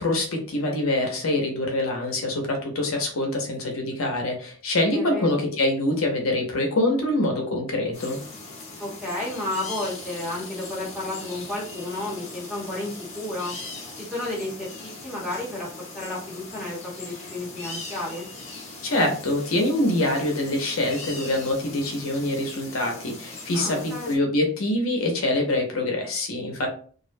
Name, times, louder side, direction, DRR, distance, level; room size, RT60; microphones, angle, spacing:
voice 1, 0.0-8.2 18.8-26.7, left 1 dB, 65° left, 2 dB, 0.6 m, -25 dB
voice 2, 4.9-5.4 8.8-13.5 13.9-14.7 15.0-18.3 23.5-24.2, left 1 dB, 5° right, -5 dB, 0.8 m, -32 dB
sound 1, 7.9-24.2, left 3 dB, 30° left, 0.6 m, -40 dB
2.4 x 2.1 x 2.5 m, 0.42 s
head